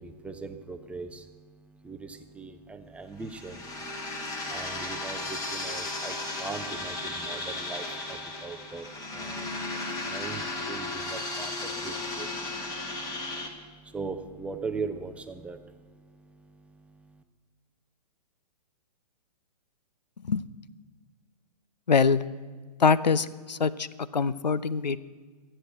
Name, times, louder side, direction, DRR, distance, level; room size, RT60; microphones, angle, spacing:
voice 1, 0.0-17.2, right 4 dB, 5° right, 8 dB, 0.5 m, -41 dB
sound 1, 3.2-13.5, left 2 dB, 15° left, 1.5 m, -35 dB
voice 2, 21.9-22.2 22.8-23.9 24.1-25.0, left 5 dB, 85° left, 17 dB, 0.6 m, -23 dB
13.0 x 8.7 x 7.8 m, 1.4 s
figure-of-eight pair, 125°, 21 cm